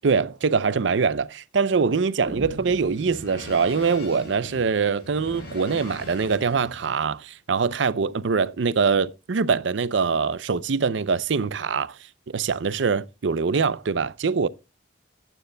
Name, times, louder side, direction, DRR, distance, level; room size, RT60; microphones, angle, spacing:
voice 1, 0.0-12.0 12.3-14.5, right 5 dB, 70° right, 0.5 m, -23 dB
sound 1, 2.1-7.1, left 1 dB, 60° left, 4.2 m, -42 dB
sound 2, 2.2-3.9, right 1 dB, 50° right, 1.4 m, -39 dB
14.5 x 9.2 x 2.2 m
head